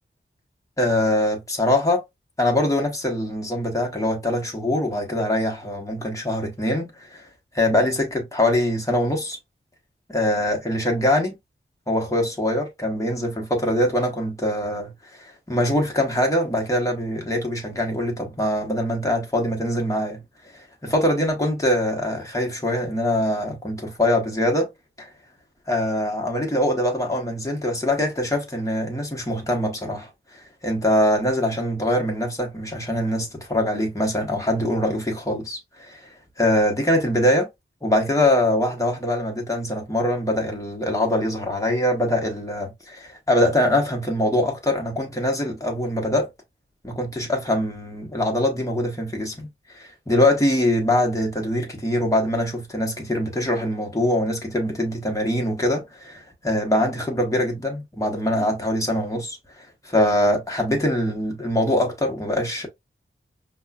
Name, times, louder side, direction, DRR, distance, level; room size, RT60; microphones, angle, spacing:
voice 1, 0.8-2.0 2.4-7.3 7.5-9.4 10.1-11.3 11.9-20.2 20.5-24.7 25.0-25.1 25.7-36.1 36.4-37.5 37.8-46.3 46.8-62.7, left 1 dB, 15° left, 1.1 m, -23 dB
5.3 x 2.2 x 2.3 m
wide cardioid pair, 65°, 21 cm